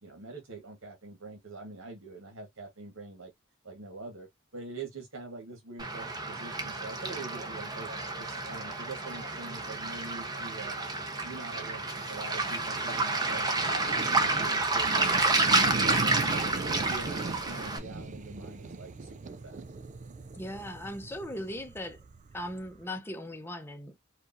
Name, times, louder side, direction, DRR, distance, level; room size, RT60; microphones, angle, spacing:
voice 1, 0.0-3.3 3.6-7.9 8.2-10.8 11.2-13.5 13.9-16.6 16.8-19.5, right 3 dB, 75° right, 1.5 m, -44 dB
Waves surf, 5.8-17.8, right 3 dB, 20° right, 0.9 m, -30 dB
sound 1, 12.4-22.8, right 3 dB, 35° right, 0.4 m, -39 dB
voice 2, 20.3-22.0 22.3-24.0, left 1 dB, 10° left, 0.8 m, -38 dB
5.0 x 2.5 x 2.6 m
head